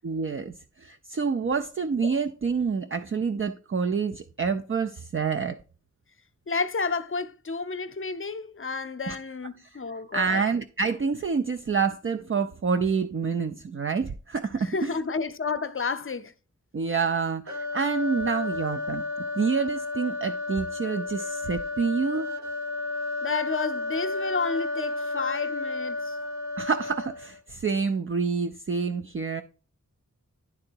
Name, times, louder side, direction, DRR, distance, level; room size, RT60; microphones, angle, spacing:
voice 1, 0.0-5.6 9.1-9.2 9.6-9.8 10.1-15.0 16.7-19.0 19.4-22.3 26.6-29.4, right 5 dB, 45° right, 0.4 m, -27 dB
voice 2, 6.5-10.4 14.6-16.3 23.2-26.1, left 4 dB, 45° left, 0.6 m, -31 dB
sound 1, 17.5-27.4, left 2 dB, 65° right, 1.0 m, -32 dB
10.5 x 3.8 x 4.5 m
wide cardioid pair, 75°, 30 cm